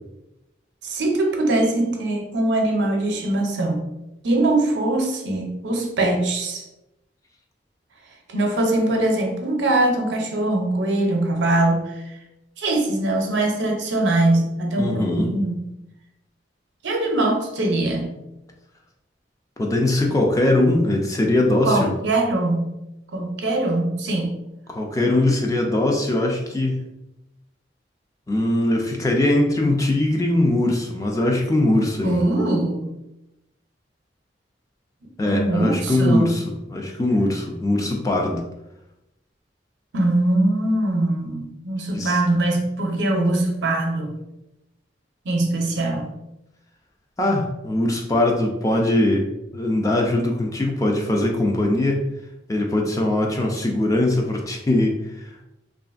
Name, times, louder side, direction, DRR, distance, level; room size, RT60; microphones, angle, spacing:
voice 1, 0.8-3.9 4.2-6.6 8.3-12.0 12.6-15.6 16.8-18.2 21.6-22.8 23.1-24.4 32.0-32.9 35.2-36.4 39.9-44.2 45.2-46.1, right 2 dB, 80° right, 2 dB, 0.6 m, -22 dB
voice 2, 14.8-15.3 19.6-21.9 24.7-26.8 28.3-32.3 35.2-36.4 36.7-38.4 41.9-42.2 47.2-49.3 49.5-52.1 52.5-55.4, left 1 dB, 20° left, 1 dB, 0.3 m, -21 dB
2.9 x 2.4 x 2.4 m, 0.90 s
head